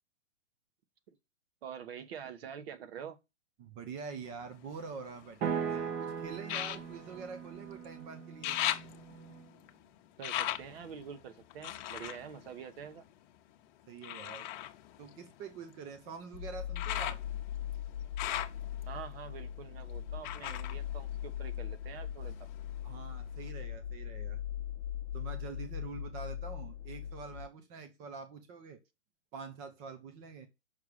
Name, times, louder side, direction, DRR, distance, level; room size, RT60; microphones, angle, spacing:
voice 1, 1.6-3.2 10.2-13.0 18.9-22.5, right 8 dB, 55° right, 1.3 m, -46 dB
voice 2, 3.6-8.6 13.9-14.5 15.0-17.2 22.8-24.4 25.1-28.8 29.3-30.5, right 5 dB, 10° right, 0.3 m, -45 dB
sound 1, 4.3-5.6 6.4-7.9 8.2-13.4 14.0-21.9 22.2-23.0 23.5-23.6, left 13 dB, 40° left, 0.9 m, -40 dB
sound 2, 5.4-9.5, right 7 dB, 25° right, 0.8 m, -39 dB
sound 3, 16.3-27.5, left 10 dB, 75° left, 0.6 m, -40 dB
5.9 x 4.7 x 6.4 m
hypercardioid pair, 130°, 36 cm